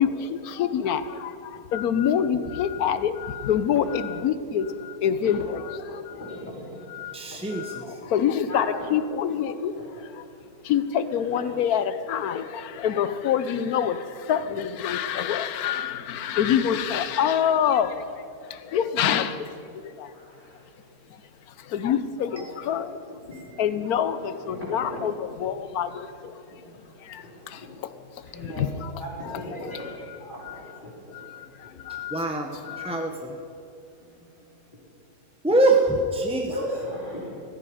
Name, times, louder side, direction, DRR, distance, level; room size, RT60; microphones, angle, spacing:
voice 1, 0.0-6.4 6.9-7.2 7.5-10.2 10.6-18.0 18.5-20.1 21.1-21.2 21.6-23.0 23.6-26.4 27.0-28.0 28.4-28.9 29.3-29.4 29.7-30.2 30.4-30.7 31.1-32.3 32.6-33.1, left 8 dB, 75° left, 13 dB, 1.2 m, -27 dB
voice 2, 6.1-6.8 7.3-7.4 8.0-8.1 8.5-8.8 9.8-9.9 11.3-11.6 18.6-18.8 20.1-20.6 22.5-22.8 23.2-23.4 23.9-24.0 24.5-25.1 26.5-27.7 28.2-31.2 34.2-34.3 34.7-34.8 36.5-37.4, left 1 dB, 30° left, -6 dB, 4.5 m, -38 dB
voice 3, 7.1-8.0 22.3-22.5 23.3-23.4 32.1-32.6 32.8-33.4 35.4-36.5, right 2 dB, 5° right, 1 dB, 0.6 m, -24 dB
14.5 x 14.5 x 5.0 m, 2.9 s
omnidirectional pair, 1.6 m